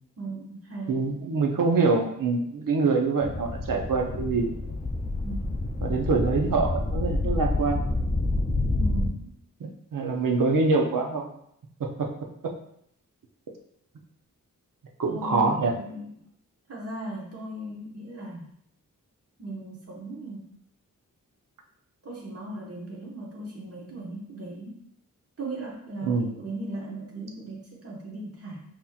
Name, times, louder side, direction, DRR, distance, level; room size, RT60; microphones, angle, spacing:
voice 1, 0.2-1.0 5.2-5.5 8.7-9.3 15.1-16.1 16.7-18.5 19.4-20.4 22.0-24.8 25.4-28.6, right 1 dB, 45° right, -3 dB, 1.3 m, -37 dB
voice 2, 0.9-4.6 5.8-7.8 9.6-11.3 15.0-15.7 26.0-26.3, right 4 dB, 70° right, 2 dB, 0.7 m, -25 dB
sound 1, 3.2-9.1, left 2 dB, 20° left, 0.5 m, -28 dB
5.3 x 3.0 x 2.4 m, 0.71 s
cardioid pair, 65°, 33 cm